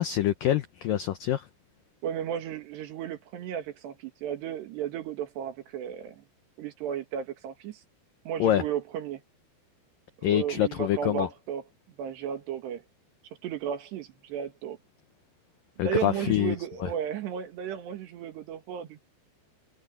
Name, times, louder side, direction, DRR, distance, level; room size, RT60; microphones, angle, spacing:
voice 1, 0.0-1.5 8.4-8.6 10.2-11.3 15.8-16.6, left 12 dB, 85° left, 1.9 m, -25 dB
voice 2, 2.0-6.2 6.6-7.8 8.3-9.2 10.2-11.6 12.0-12.8 13.4-14.8 15.8-19.0, right 9 dB, 70° right, 3.9 m, -34 dB
omnidirectional pair, 5.3 m